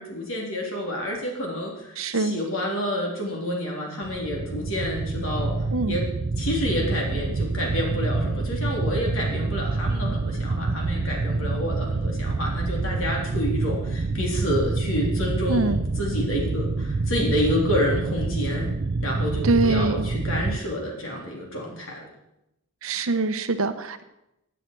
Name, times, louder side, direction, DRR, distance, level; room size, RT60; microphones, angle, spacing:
voice 1, 0.0-5.6 5.9-6.1 6.4-18.7 19.0-22.1, equal, 60° left, -1 dB, 3.5 m, -29 dB
voice 2, 2.0-2.4 5.7-6.0 15.5-15.8 19.4-20.1 22.8-24.0, right 3 dB, 65° right, 10 dB, 0.9 m, -24 dB
sound 1, 4.0-20.6, right 3 dB, 45° right, 0.5 m, -27 dB
16.0 x 9.1 x 4.6 m, 0.87 s
head